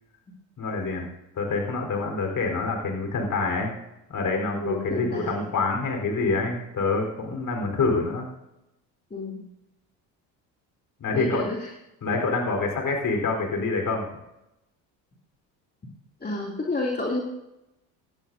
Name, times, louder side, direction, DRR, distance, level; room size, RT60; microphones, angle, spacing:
voice 1, 0.6-1.1 1.4-3.7 4.1-8.3 11.0-11.5 12.0-14.0, left 3 dB, 45° left, 2 dB, 4.0 m, -26 dB
voice 2, 4.5-5.3 9.1-9.4 11.1-11.6 16.2-17.2, left 2 dB, 20° left, -2 dB, 2.7 m, -29 dB
17.5 x 12.0 x 2.7 m, 0.89 s
supercardioid pair, 75°, 43 cm